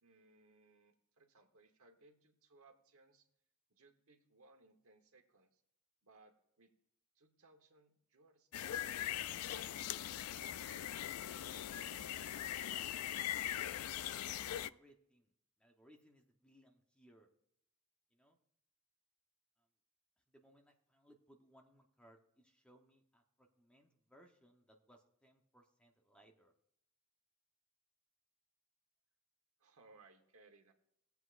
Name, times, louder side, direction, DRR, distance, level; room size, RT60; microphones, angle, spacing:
voice 1, 0.0-3.3 3.7-5.6 6.0-6.7 7.1-12.4 29.6-30.7, right 3 dB, 75° right, 5 dB, 1.2 m, -67 dB
sound 1, 8.5-14.7, left 11 dB, 85° left, 0.3 m, -41 dB
voice 2, 13.7-14.1 14.5-15.3 15.6-17.3 18.1-18.4 19.6-19.7 20.3-26.5, equal, 5° left, 2 dB, 0.9 m, -67 dB
18.0 x 8.1 x 2.5 m, 0.79 s
head